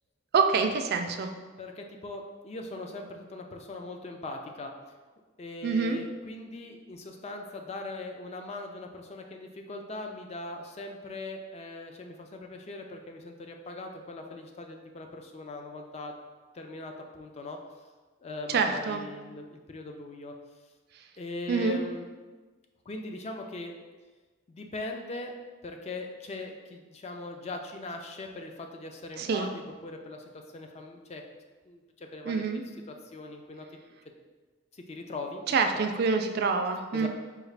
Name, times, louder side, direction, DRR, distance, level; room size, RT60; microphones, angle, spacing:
voice 1, 0.3-1.3 5.6-6.0 18.5-19.0 21.5-21.9 29.2-29.5 32.2-32.6 35.5-37.1, right 4 dB, 55° right, 6 dB, 0.3 m, -26 dB
voice 2, 1.6-4.7 5.4-16.1 16.5-17.6 18.2-20.3 21.2-22.1 22.9-23.7 24.5-25.4 25.6-31.2 31.7-32.5 32.9-33.7 34.7-35.9 36.9-37.1, left 2 dB, 35° left, 3 dB, 0.4 m, -40 dB
4.8 x 2.3 x 3.3 m, 1.3 s
head